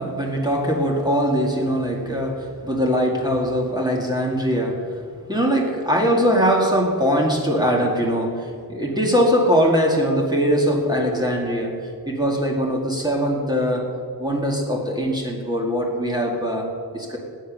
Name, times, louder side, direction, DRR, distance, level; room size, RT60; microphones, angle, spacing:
voice 1, 0.0-4.8 5.3-11.8 12.1-13.9 14.2-16.7 16.9-17.2, equal, 10° right, -1 dB, 2.2 m, -21 dB
18.5 x 9.2 x 6.3 m, 2.3 s
wide cardioid pair, 160°, 37 cm